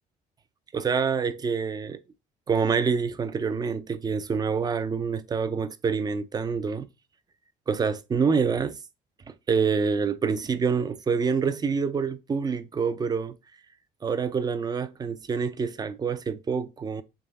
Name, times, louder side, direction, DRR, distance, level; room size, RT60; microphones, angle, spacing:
voice 1, 0.7-2.0 2.5-6.9 7.7-8.8 9.5-13.4 14.0-17.0, right 5 dB, 25° right, 0.4 m, -26 dB
3.5 x 3.1 x 3.9 m
cardioid pair, 110°, 17 cm